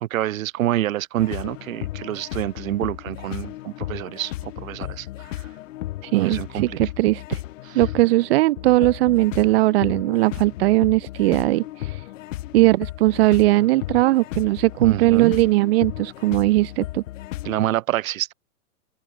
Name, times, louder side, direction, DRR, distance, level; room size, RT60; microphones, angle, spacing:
voice 1, 0.0-5.4 6.1-6.8 7.6-7.8 14.8-15.3 17.5-18.3, right 14 dB, 60° right, 1.9 m, -27 dB
sound 1, 1.2-17.8, left 15 dB, 55° left, 1.8 m, -35 dB
voice 2, 6.0-7.4 7.7-12.0 12.5-17.0, right 18 dB, 40° right, 0.8 m, -19 dB
hypercardioid pair, 140°, 46 cm